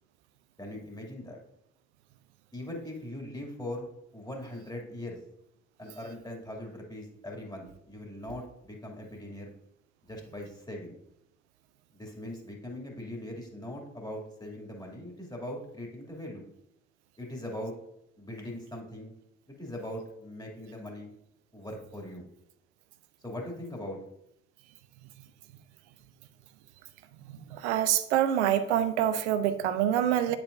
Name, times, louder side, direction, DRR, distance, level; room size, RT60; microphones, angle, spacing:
voice 1, 0.6-1.4 2.5-3.9 4.1-5.2 5.8-9.5 10.1-10.9 11.9-16.5 17.2-17.7 18.2-19.1 19.5-21.1 21.5-22.3 23.2-24.0, left 1 dB, 10° left, -1 dB, 2.5 m, -40 dB
voice 2, 27.5-30.4, right 10 dB, 80° right, 13 dB, 0.5 m, -26 dB
10.0 x 4.7 x 2.6 m, 0.79 s
figure-of-eight pair, 40°, 34 cm